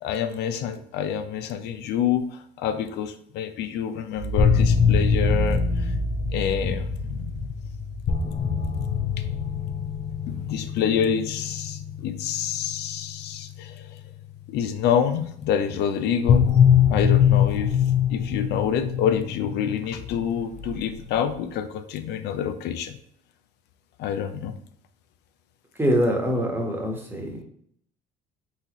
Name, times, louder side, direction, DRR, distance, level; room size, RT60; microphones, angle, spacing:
voice 1, 0.0-5.9 6.3-7.5 10.3-13.9 14.5-16.5 16.9-17.8 18.1-23.0 24.0-24.5, left 8 dB, 70° left, 9 dB, 0.5 m, -27 dB
sound 1, 4.2-14.3 16.3-21.3, left 6 dB, 45° left, 0.9 m, -24 dB
voice 2, 25.8-27.4, equal, 10° right, 1 dB, 1.2 m, -24 dB
4.2 x 3.9 x 3.0 m, 0.66 s
cardioid pair, 100°, 18 cm